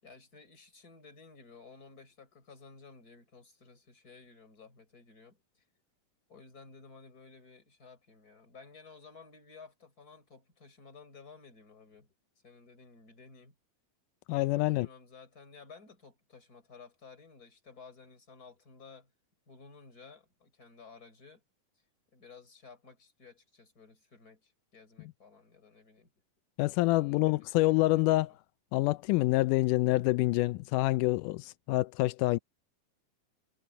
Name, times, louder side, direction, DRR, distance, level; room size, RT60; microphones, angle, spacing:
voice 1, 0.0-5.6 6.3-12.1 12.4-13.5 14.5-19.1 19.5-21.4 22.1-26.1 26.9-28.2, left 4 dB, 25° left, 4.9 m, -55 dB
voice 2, 14.3-14.9 26.6-28.3 28.7-32.4, left 19 dB, 90° left, 1.8 m, -27 dB
omnidirectional pair, 4.2 m